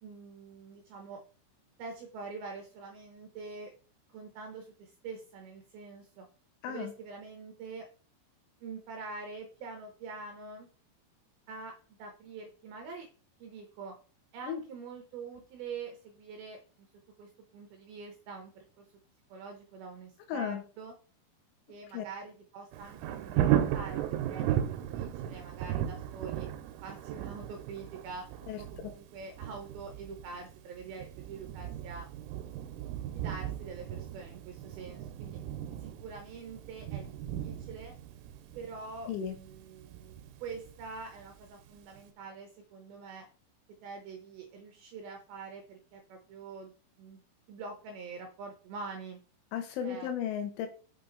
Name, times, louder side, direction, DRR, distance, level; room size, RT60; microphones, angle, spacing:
voice 1, 0.0-1.2 1.8-3.7 4.1-6.3 6.7-7.9 8.6-10.7 11.5-13.1 13.4-14.0 14.3-16.9 17.2-18.9 19.3-20.9 21.7-26.5 26.8-28.3 28.6-32.1 33.1-35.4 35.8-37.9 38.5-40.1 40.4-43.3 43.8-46.7 47.0-47.2 47.5-49.2 49.8-50.1, right 4 dB, 70° right, 3 dB, 2.4 m, -45 dB
voice 2, 20.3-20.6 21.9-22.1 28.5-28.9 39.1-39.4 49.5-50.7, left 8 dB, 80° left, 6 dB, 3.5 m, -35 dB
Thunder, 22.7-41.5 42.0-42.1, right 11 dB, 90° right, 3.3 m, -36 dB
6.4 x 6.4 x 4.0 m, 0.37 s
omnidirectional pair, 5.6 m